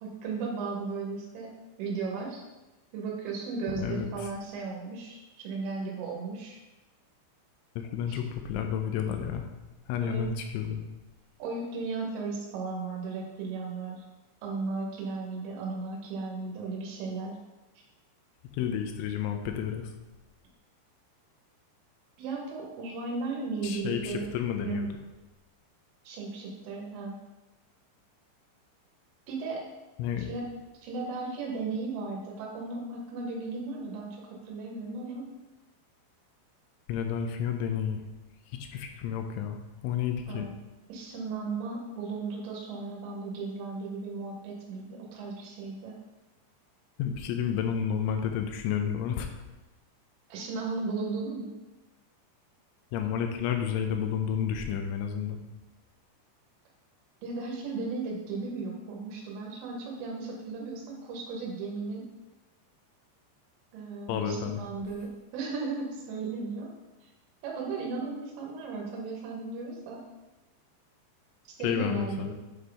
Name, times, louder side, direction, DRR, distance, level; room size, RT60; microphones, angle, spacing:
voice 1, 0.0-1.5 1.8-2.4 2.9-6.6 8.1-8.2 10.0-10.3 11.4-14.1 14.4-17.4 22.2-24.3 24.6-24.8 26.1-27.2 29.3-29.6 30.2-30.5 30.8-34.2 34.4-35.3 40.3-40.6 40.9-46.0 50.3-51.5 57.2-62.1 63.7-66.7 67.0-67.1 67.4-70.1 71.6-72.3, right 4 dB, 90° right, -1 dB, 3.6 m, -35 dB
voice 2, 3.7-4.3 7.8-9.5 9.9-10.8 18.5-19.9 23.6-24.9 30.0-30.3 36.9-38.0 38.5-40.5 47.0-49.3 52.9-55.4 64.1-64.6 71.6-72.3, left 8 dB, 85° left, 5 dB, 3.0 m, -31 dB
8.4 x 3.8 x 3.4 m, 1.1 s
omnidirectional pair, 5.5 m